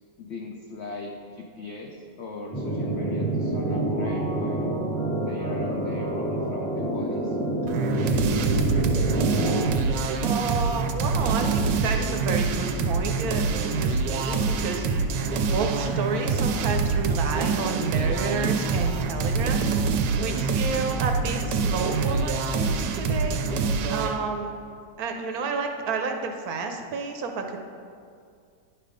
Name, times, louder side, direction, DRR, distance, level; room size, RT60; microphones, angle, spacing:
voice 1, 0.2-4.7 5.1-7.4, left 3 dB, 80° left, 0 dB, 0.6 m, -39 dB
sound 1, 2.5-9.7, right 2 dB, 10° left, 0.4 m, -27 dB
sound 2, 7.7-24.2, right 4 dB, 85° right, 1.2 m, -25 dB
voice 2, 10.2-14.9 15.5-23.4 23.9-24.5 25.0-27.6, right 4 dB, 70° right, 4 dB, 1.0 m, -31 dB
9.9 x 3.4 x 5.0 m, 2.3 s
omnidirectional pair, 1.8 m